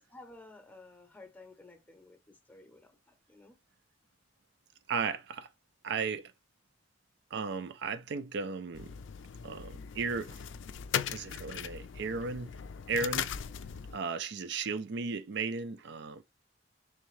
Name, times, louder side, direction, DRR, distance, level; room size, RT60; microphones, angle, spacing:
voice 1, 0.0-3.6, left 2 dB, 10° left, 0.7 m, -54 dB
voice 2, 4.9-5.5 5.8-6.3 7.3-8.9 9.4-10.4 11.1-12.5 12.9-13.4 13.9-16.2, right 4 dB, 65° right, 0.4 m, -35 dB
sound 1, 8.7-14.0, left 8 dB, 80° left, 0.4 m, -38 dB
3.5 x 3.2 x 3.2 m
head